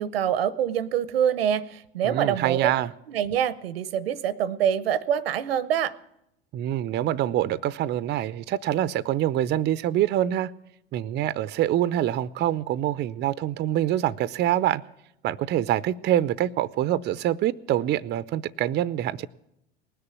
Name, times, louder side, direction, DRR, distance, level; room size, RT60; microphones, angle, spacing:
voice 1, 0.0-2.6 3.1-5.9, right 9 dB, 90° right, 17 dB, 0.8 m, -25 dB
voice 2, 2.0-2.9 6.5-10.5 10.9-14.8 15.2-19.3, right 12 dB, 35° right, 17 dB, 0.5 m, -25 dB
19.0 x 6.8 x 9.7 m, 0.82 s
hypercardioid pair, 90°, 29 cm